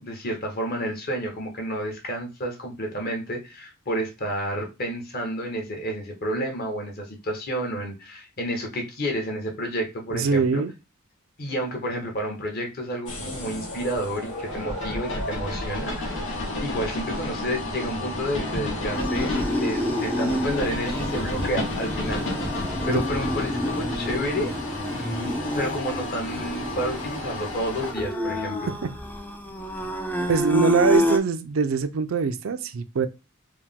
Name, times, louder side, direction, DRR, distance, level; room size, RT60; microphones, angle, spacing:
voice 1, 0.0-10.6 11.4-19.3 19.6-22.2 22.8-24.5 24.9-28.7, equal, 45° left, 1.2 m, -30 dB
voice 2, 10.1-10.7 22.9-23.0 28.8-28.9 30.3-33.1, right 5 dB, 70° right, 0.4 m, -23 dB
sound 1, 13.1-27.9, left 2 dB, 85° left, 1.6 m, -34 dB
sound 2, 14.5-24.5, left 1 dB, 60° left, 1.4 m, -33 dB
sound 3, 18.9-31.2, left 1 dB, 10° left, 0.4 m, -29 dB
4.6 x 2.2 x 3.6 m
head